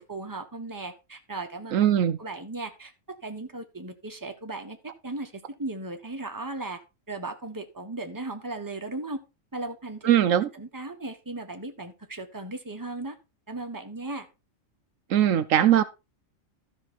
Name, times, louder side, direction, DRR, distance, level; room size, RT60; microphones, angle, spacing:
voice 1, 0.0-1.8 2.2-6.8 7.1-9.2 9.5-10.2 10.5-13.2 13.5-14.3, right 2 dB, 15° right, 1.4 m, -37 dB
voice 2, 1.7-2.2 10.0-10.5 15.1-15.8, right 10 dB, 80° right, 1.1 m, -20 dB
13.5 x 6.2 x 4.2 m
omnidirectional pair, 1.4 m